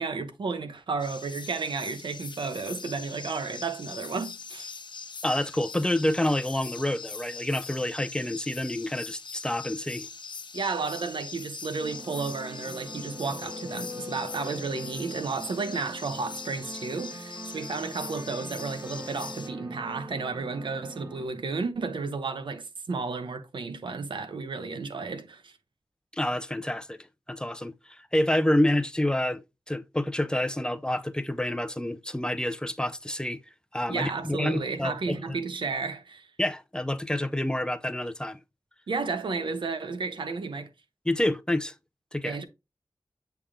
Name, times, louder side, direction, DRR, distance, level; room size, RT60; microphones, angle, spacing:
voice 1, 0.0-4.7 10.5-25.6 33.9-36.3 38.9-40.7 42.2-42.4, right 4 dB, 90° right, 0.9 m, -32 dB
sound 1, 1.0-19.5, left 5 dB, 80° left, 0.9 m, -42 dB
voice 2, 5.2-10.1 26.1-27.0 27.3-33.4 33.7-35.4 36.4-38.4 41.1-41.7 42.1-42.4, left 1 dB, 10° left, 0.5 m, -28 dB
sound 2, 11.8-21.3, right 2 dB, 35° right, 1.4 m, -43 dB
sound 3, 12.4-15.3, left 7 dB, 55° right, 1.2 m, -46 dB
8.5 x 3.5 x 3.6 m
wide cardioid pair, 85°, 8 cm